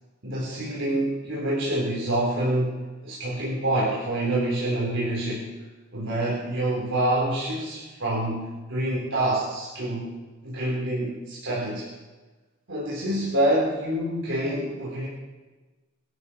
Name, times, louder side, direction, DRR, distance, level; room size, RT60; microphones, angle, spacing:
voice 1, 0.2-5.5 5.9-10.1 10.4-11.9 12.7-15.1, right 1 dB, 65° right, -5 dB, 3.8 m, -26 dB
23.5 x 12.5 x 4.4 m, 1.2 s
head